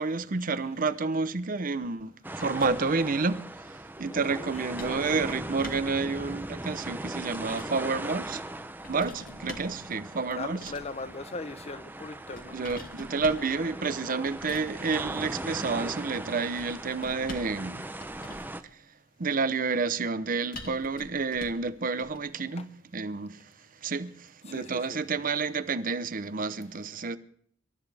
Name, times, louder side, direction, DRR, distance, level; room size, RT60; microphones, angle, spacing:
voice 1, 0.0-3.4 4.0-8.4 8.9-10.7 12.5-17.8 19.2-23.5 23.8-27.2, right 4 dB, 45° right, 0.7 m, -30 dB
sound 1, 2.2-18.6, right 1 dB, 10° right, 0.7 m, -39 dB
sound 2, 2.4-3.0 4.8-6.0 7.0-7.8 8.8-9.8 10.5-11.0 12.4-13.5 14.3-14.7 16.6-17.6 18.0-18.6 20.5-21.7 22.0-22.2, left 2 dB, 50° left, 2.1 m, -45 dB
voice 2, 4.1-4.5 10.3-12.5 22.6-22.7 24.5-25.0, left 3 dB, 35° left, 1.0 m, -39 dB
26.0 x 13.0 x 3.5 m
head